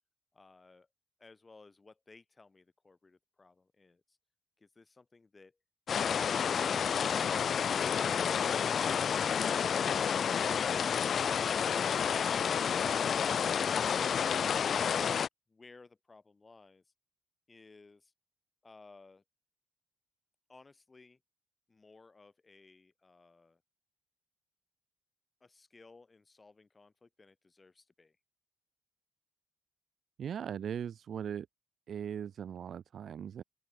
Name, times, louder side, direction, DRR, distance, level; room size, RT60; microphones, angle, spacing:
voice 1, 0.3-0.9 1.2-4.2 4.6-5.6 6.1-6.9 12.3-13.7 14.2-15.2 15.5-16.9 17.5-18.1 18.6-19.2 20.5-21.2 21.7-23.6 25.4-28.2, left 3 dB, 25° left, 3.8 m, -57 dB
sound 1, 5.9-15.3, left 7 dB, 55° left, 0.5 m, -30 dB
voice 2, 30.2-31.5 31.9-33.4, right 8 dB, 60° right, 0.8 m, -39 dB
open air
cardioid pair, 90°, 0 cm